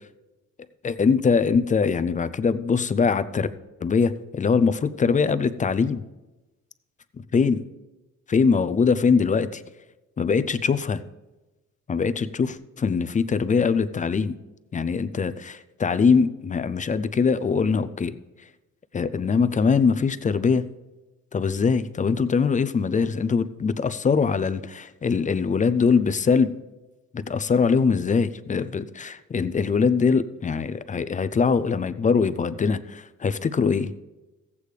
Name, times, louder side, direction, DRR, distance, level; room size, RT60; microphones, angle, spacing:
voice 1, 0.8-3.5 3.8-6.0 7.3-7.6 8.3-9.6 10.2-11.0 11.9-14.3 14.7-18.2 18.9-20.7 21.3-26.5 27.1-33.9, left 5 dB, 25° left, 13 dB, 0.5 m, -22 dB
14.5 x 8.3 x 3.3 m, 1.1 s
cardioid pair, 90°, 30 cm